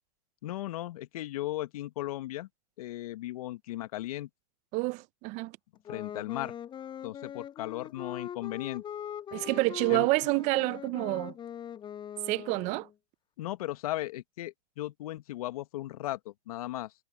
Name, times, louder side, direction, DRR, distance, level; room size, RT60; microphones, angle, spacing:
voice 1, 0.4-2.5 2.8-4.3 5.9-6.5 7.0-8.8 9.9-10.1 13.4-16.9, left 15 dB, 60° left, 1.8 m, -36 dB
voice 2, 4.7-5.5 9.3-11.3 12.3-12.9, right 24 dB, 35° right, 0.8 m, -28 dB
Wind instrument woodwind instrument, 5.8-12.9, left 9 dB, 20° left, 7.4 m, -42 dB
hypercardioid pair, 130°, 21 cm